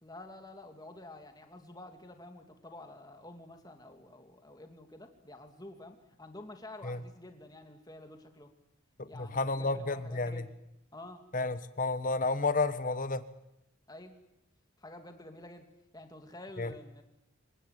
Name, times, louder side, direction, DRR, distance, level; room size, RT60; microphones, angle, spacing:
voice 1, 0.0-8.5 9.1-10.5 10.9-11.3 13.9-14.2 14.8-15.7 15.9-17.0, left 1 dB, 20° left, 5 dB, 2.8 m, -49 dB
voice 2, 9.0-10.4 11.3-13.2 16.6-16.7, left 3 dB, 40° left, 12 dB, 1.4 m, -31 dB
25.5 x 18.5 x 9.5 m, 0.86 s
head